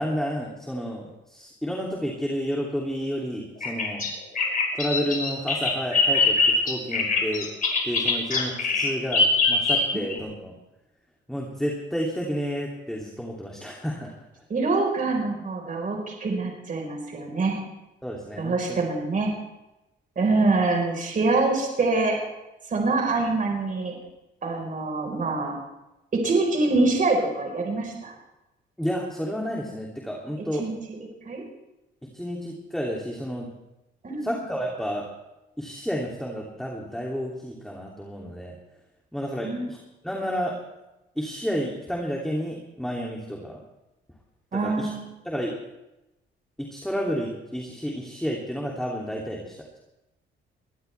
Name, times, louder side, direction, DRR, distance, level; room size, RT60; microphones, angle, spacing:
voice 1, 0.0-4.1 4.7-7.5 7.8-10.5 11.3-14.1 18.0-18.6 28.8-30.7 32.0-33.5 34.2-35.1 35.6-38.6 39.1-39.8 40.0-40.7 41.2-43.6 44.5-44.9 45.2-45.6 46.6-49.8, equal, ahead, -2 dB, 2.8 m, -31 dB
Bird vocalization bird call bird song, 3.6-10.2, left 3 dB, 45° left, 4.6 m, -23 dB
voice 2, 14.5-17.5 18.4-19.3 20.2-22.2 22.7-23.9 24.4-25.5 26.1-28.1 30.6-30.7 31.3-31.4 34.0-34.3 39.4-39.7 44.5-45.0, right 3 dB, 45° right, 1 dB, 4.5 m, -25 dB
22.0 x 17.5 x 3.4 m, 0.96 s
cardioid pair, 90°, 20 cm